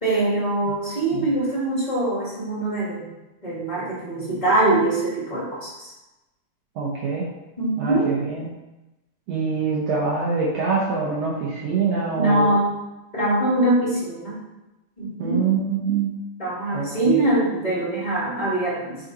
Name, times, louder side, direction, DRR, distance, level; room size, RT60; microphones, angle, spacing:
voice 1, 0.0-3.1 3.4-5.9 7.6-8.1 12.2-12.7 13.1-14.4 15.0-15.5 16.4-19.0, right 2 dB, 15° left, -9 dB, 1.7 m, -23 dB
voice 2, 6.8-7.3 7.8-8.5 9.3-12.5 15.2-16.1 16.7-17.2, right 5 dB, 70° right, -5 dB, 1.7 m, -25 dB
6.4 x 4.1 x 4.0 m, 1.0 s
omnidirectional pair, 4.0 m